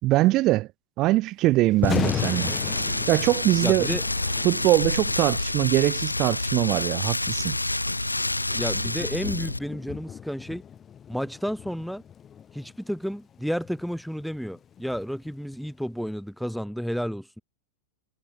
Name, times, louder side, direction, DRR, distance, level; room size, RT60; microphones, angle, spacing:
voice 1, 0.0-0.7 1.0-2.5 3.1-3.9 4.4-7.6, right 18 dB, 40° right, 2.9 m, -22 dB
Thunder, 1.7-15.8, left 8 dB, 25° left, 7.9 m, -37 dB
Rain, 1.8-9.6, left 2 dB, 85° left, 2.6 m, -28 dB
voice 2, 3.6-4.0 8.5-10.6 11.1-12.0 12.5-17.4, equal, ahead, 3.0 m, -31 dB
figure-of-eight pair, 90°, 0 cm